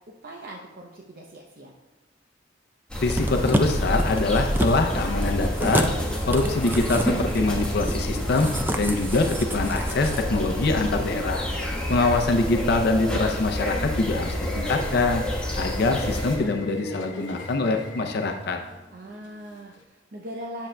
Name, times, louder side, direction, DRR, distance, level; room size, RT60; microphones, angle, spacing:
voice 1, 0.2-1.7 11.7-12.7 18.9-20.7, right 1 dB, 50° right, -1 dB, 0.7 m, -41 dB
sound 1, 2.9-16.4, equal, 5° left, 1.2 m, -28 dB
voice 2, 3.0-5.9 6.3-8.5 8.8-11.4 11.9-15.2 15.6-18.6, left 3 dB, 60° left, 4 dB, 0.6 m, -24 dB
sound 2, 3.1-10.2 10.6-10.7, right 1 dB, 10° right, 0.4 m, -30 dB
Subway metro underground, 3.9-19.8, left 2 dB, 80° left, 0.9 m, -42 dB
9.9 x 6.9 x 2.2 m, 1.2 s
head